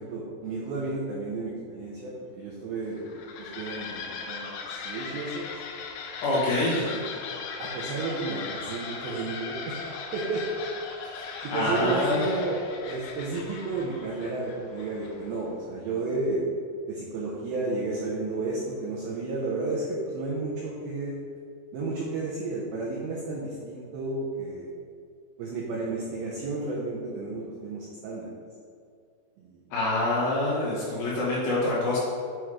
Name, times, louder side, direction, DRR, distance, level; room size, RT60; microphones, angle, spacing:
voice 1, 0.0-5.5 6.7-7.1 7.6-9.8 10.1-10.4 11.4-16.5 16.9-21.2 21.7-24.7 25.4-28.3 29.4-29.6, right 3 dB, 80° right, -4 dB, 2.1 m, -32 dB
sound 1, 2.9-15.4, left 5 dB, 80° left, 2.5 m, -38 dB
voice 2, 6.2-6.9 11.0-12.2 29.7-32.0, left 2 dB, 65° left, -7 dB, 3.0 m, -26 dB
8.4 x 3.0 x 4.8 m, 2.3 s
omnidirectional pair, 5.2 m